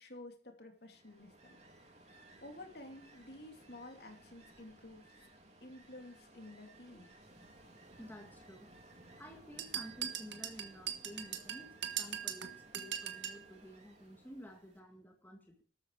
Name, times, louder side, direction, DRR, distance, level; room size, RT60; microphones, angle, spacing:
voice 1, 0.0-1.6 2.0-5.3 5.6-7.1, left 1 dB, 55° left, 4 dB, 2.9 m, -52 dB
Ocean, 0.8-14.9, right 1 dB, 35° right, 3.7 m, -60 dB
voice 2, 8.0-8.7 9.2-15.6, equal, 10° left, 2 dB, 2.0 m, -52 dB
sound 1, 9.6-13.4, right 9 dB, 70° right, 1.6 m, -40 dB
14.0 x 13.0 x 4.8 m, 0.42 s
head